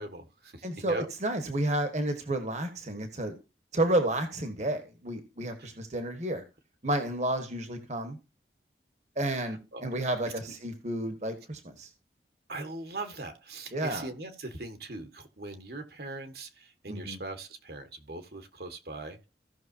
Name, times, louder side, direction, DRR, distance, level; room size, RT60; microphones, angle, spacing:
voice 1, 0.0-1.1 5.6-5.8 9.4-9.8 10.5-10.6 12.5-19.3, right 2 dB, 60° right, 1.6 m, -41 dB
voice 2, 0.6-3.3 3.7-6.4 6.8-8.2 9.2-11.9 13.7-14.1 16.9-17.2, right 1 dB, 40° right, 1.4 m, -31 dB
16.5 x 6.3 x 2.7 m
head